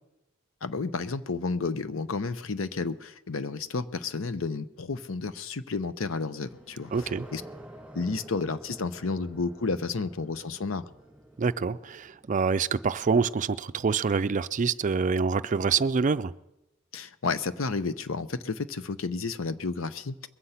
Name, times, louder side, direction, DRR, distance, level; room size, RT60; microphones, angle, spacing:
voice 1, 0.6-7.4 7.9-10.9 16.9-20.3, left 4 dB, 85° left, 13 dB, 0.8 m, -31 dB
sound 1, 6.4-12.8, right 1 dB, 5° right, 2.2 m, -49 dB
voice 2, 6.9-7.2 11.4-16.3, right 5 dB, 40° right, 14 dB, 0.4 m, -26 dB
21.5 x 8.0 x 5.7 m, 0.92 s
head